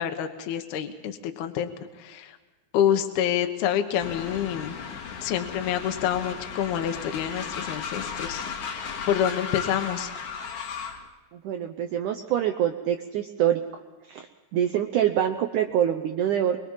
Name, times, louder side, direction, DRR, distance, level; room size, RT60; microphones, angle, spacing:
voice 1, 0.0-1.7 2.0-2.4 2.7-4.8 5.2-10.1, left 10 dB, 75° left, 6 dB, 3.1 m, -27 dB
Train, 4.0-11.1, left 6 dB, 55° left, 2.9 m, -35 dB
voice 2, 11.3-13.6 14.1-14.3 14.5-16.6, right 10 dB, 75° right, 6 dB, 1.9 m, -25 dB
25.0 x 23.0 x 5.7 m, 1.2 s
omnidirectional pair, 4.6 m